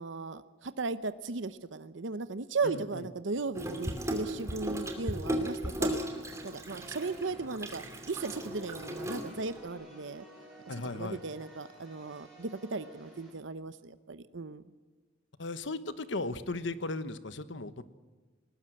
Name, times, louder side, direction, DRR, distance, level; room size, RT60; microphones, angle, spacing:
voice 1, 0.0-6.0 6.4-10.2 10.9-14.6, right 3 dB, 70° right, 13 dB, 0.8 m, -36 dB
voice 2, 2.6-3.1 10.7-11.2 15.4-17.8, left 2 dB, 70° left, 13 dB, 1.2 m, -36 dB
Water tap faucet / Sink (filling or washing), 3.5-9.7, equal, 15° right, 2.6 m, -36 dB
sound 1, 6.8-13.3, right 1 dB, ahead, 8.0 m, -53 dB
20.0 x 20.0 x 7.8 m, 1.4 s
head